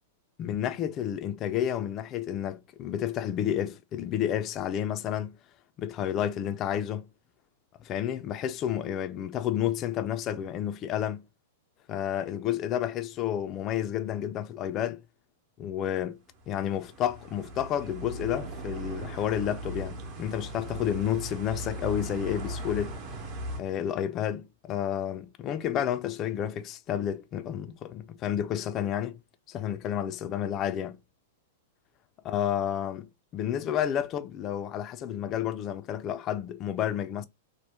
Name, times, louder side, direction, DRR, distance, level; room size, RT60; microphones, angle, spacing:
voice 1, 0.4-5.4 5.8-7.1 7.8-11.3 11.9-15.0 15.6-16.2 16.5-23.0 23.6-29.2 29.5-31.0 32.2-37.2, left 10 dB, 35° left, 0.4 m, -30 dB
sound 1, 16.4-23.6, right 1 dB, 45° right, 0.9 m, -38 dB
2.9 x 2.1 x 3.4 m
hypercardioid pair, 110°, 0 cm